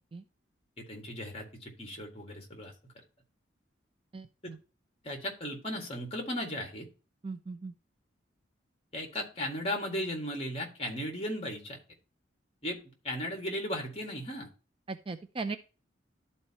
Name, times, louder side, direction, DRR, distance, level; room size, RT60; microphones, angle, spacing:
voice 1, 0.8-2.9 4.4-4.5 5.0-6.9 8.9-11.8 12.6-14.5, equal, 30° left, 3 dB, 2.0 m, -36 dB
voice 2, 4.1-4.6 7.2-7.7 14.9-15.6, right 4 dB, 30° right, 9 dB, 0.4 m, -38 dB
12.5 x 4.3 x 2.9 m, 0.33 s
head